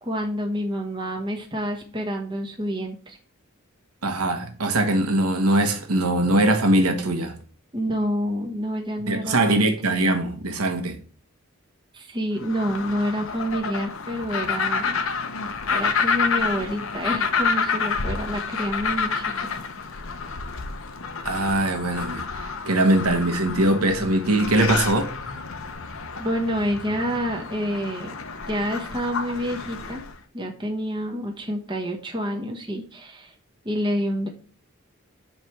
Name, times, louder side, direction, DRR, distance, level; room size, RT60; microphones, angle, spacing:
voice 1, 0.0-3.2 7.7-9.8 11.9-15.0 15.7-19.2 26.2-28.1 28.5-30.0 30.3-33.3 33.6-34.3, equal, 20° right, 1.2 m, -28 dB
voice 2, 4.0-7.3 9.1-11.0 21.2-25.1, right 1 dB, 90° right, 1.2 m, -21 dB
sound 1, 12.4-30.1, left 5 dB, 65° left, 0.8 m, -29 dB
7.8 x 3.3 x 5.8 m
head